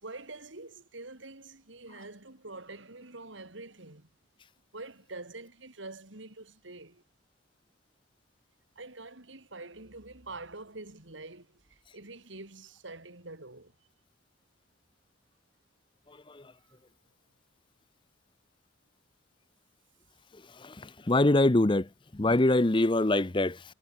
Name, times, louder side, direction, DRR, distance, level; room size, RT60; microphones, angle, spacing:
voice 1, 0.0-4.1 4.7-7.0 8.7-13.7 16.7-16.8, right 2 dB, 75° right, 3.4 m, -46 dB
voice 2, 20.6-23.6, left 2 dB, 25° left, 0.7 m, -24 dB
head